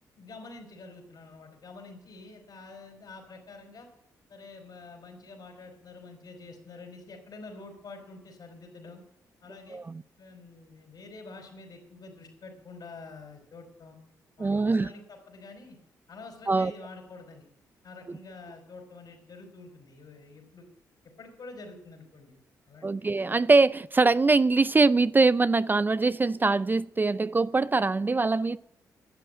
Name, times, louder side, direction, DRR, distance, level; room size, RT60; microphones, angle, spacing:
voice 1, 0.2-3.9 4.3-9.0 9.4-9.8 10.2-14.0 14.4-15.8 16.1-17.5 17.8-20.7 21.2-22.4 22.7-23.2, left 3 dB, 65° left, 4.5 m, -47 dB
voice 2, 9.7-10.0 14.4-14.9 16.5-16.7 18.1-18.2 22.8-28.6, right 3 dB, 25° right, 0.4 m, -23 dB
11.5 x 7.6 x 8.9 m
supercardioid pair, 60°, 7 cm